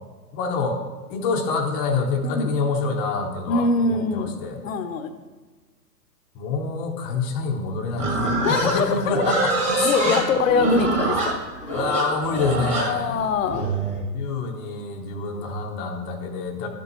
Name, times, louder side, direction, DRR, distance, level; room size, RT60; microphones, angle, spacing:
voice 1, 0.3-0.8 1.1-4.6 6.3-10.2 11.7-13.2 14.1-16.7, left 4 dB, 20° left, 0 dB, 0.7 m, -26 dB
voice 2, 3.5-4.3 4.6-5.1 8.4-9.1 9.8-11.7 12.8-13.7 15.3-15.4, left 4 dB, 55° left, 8 dB, 0.8 m, -23 dB
Livestock farm animals working animals, 8.0-14.0, right 2 dB, 15° right, 1.5 m, -25 dB
11.5 x 7.0 x 3.0 m, 1.4 s
hypercardioid pair, 130°, 50 cm